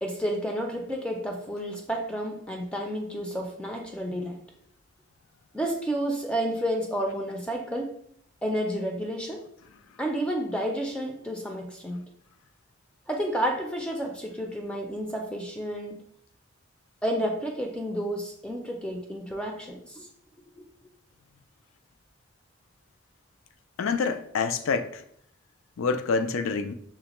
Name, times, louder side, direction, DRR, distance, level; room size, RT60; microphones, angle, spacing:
voice 1, 0.0-4.4 5.5-7.9 8.4-9.4 10.0-12.0 13.1-16.0 17.0-20.1 20.6-20.7, equal, 5° left, 0.4 m, -31 dB
voice 2, 23.8-25.0 25.8-26.7, left 5 dB, 85° left, 0.4 m, -27 dB
5.7 x 2.1 x 3.0 m
head